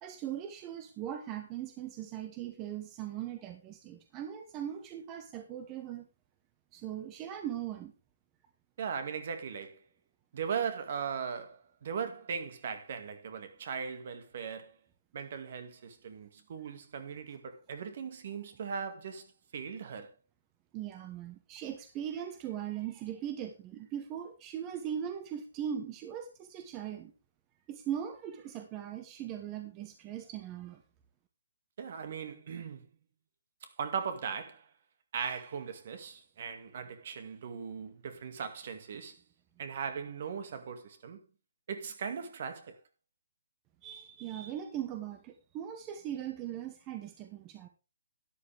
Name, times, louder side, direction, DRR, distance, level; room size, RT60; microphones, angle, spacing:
voice 1, 0.0-6.1 6.7-7.9 20.7-27.1 27.7-30.8 43.8-47.7, right 10 dB, 20° right, 1.1 m, -39 dB
voice 2, 8.8-9.8 10.3-14.7 15.1-20.1 31.8-32.9 33.6-34.7 35.1-39.2 39.6-41.2 41.7-42.8, right 6 dB, 50° right, 2.1 m, -38 dB
12.5 x 10.5 x 3.5 m
hypercardioid pair, 155°, 0 cm